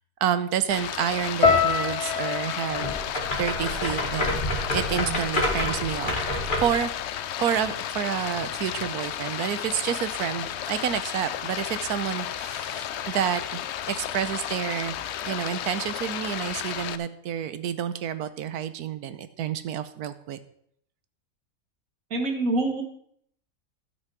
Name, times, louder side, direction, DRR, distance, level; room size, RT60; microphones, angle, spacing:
voice 1, 0.2-2.9 3.4-4.4 4.7-6.2 6.6-6.9 7.4-15.0 15.3-20.4, right 9 dB, 75° right, 13 dB, 1.2 m, -29 dB
Stream, 0.7-17.0, left 10 dB, 70° left, 0.6 m, -33 dB
sound 1, 1.4-5.6 5.9-6.7 7.3-7.5, left 5 dB, 85° left, 3.0 m, -28 dB
sound 2, 2.7-6.8, left 1 dB, 30° left, 2.1 m, -28 dB
voice 2, 22.1-22.8, right 2 dB, 60° right, 4 dB, 1.9 m, -26 dB
12.0 x 6.2 x 6.1 m, 0.67 s
omnidirectional pair, 1.7 m